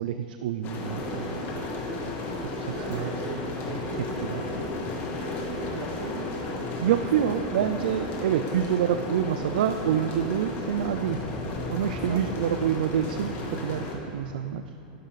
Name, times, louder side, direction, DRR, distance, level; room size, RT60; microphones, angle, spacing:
voice 1, 0.0-1.7 2.5-3.1 6.8-11.3 11.7-14.6, right 10 dB, 80° right, 9 dB, 0.5 m, -27 dB
sound 1, 0.6-13.9, left 2 dB, 45° left, 2.6 m, -33 dB
voice 2, 2.7-6.5 6.8-7.5 12.1-12.7, right 3 dB, 60° right, 1 dB, 2.4 m, -40 dB
16.5 x 11.5 x 4.1 m, 2.8 s
supercardioid pair, 120°, 5 cm